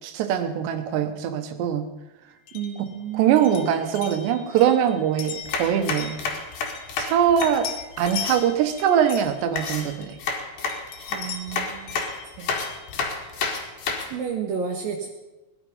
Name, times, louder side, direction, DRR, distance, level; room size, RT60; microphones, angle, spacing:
voice 1, 0.0-1.9 3.1-6.2 7.0-7.7 8.0-10.2 12.4-12.5, right 9 dB, 85° right, 7 dB, 3.4 m, -22 dB
sound 1, 2.5-7.1 7.4-10.3 10.7-13.8, left 7 dB, 80° left, 3.6 m, -39 dB
voice 2, 2.5-3.5 11.1-12.0 14.1-15.1, right 7 dB, 65° right, 0 dB, 2.7 m, -31 dB
sound 2, 5.2-8.4 9.6-14.1, left 4 dB, 60° left, 3.4 m, -30 dB
18.5 x 11.0 x 5.5 m, 1.1 s
omnidirectional pair, 4.9 m